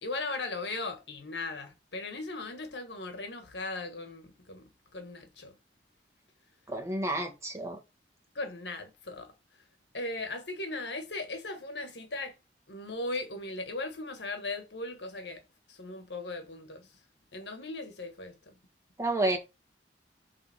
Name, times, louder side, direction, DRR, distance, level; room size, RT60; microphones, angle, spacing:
voice 1, 0.0-5.6 8.4-9.3 9.9-12.4 12.7-15.4 15.7-16.9 17.3-18.5, left 2 dB, 75° left, 1.6 m, -38 dB
voice 2, 6.7-7.8 19.0-19.4, right 2 dB, 15° right, 1.7 m, -30 dB
8.1 x 3.7 x 4.3 m
head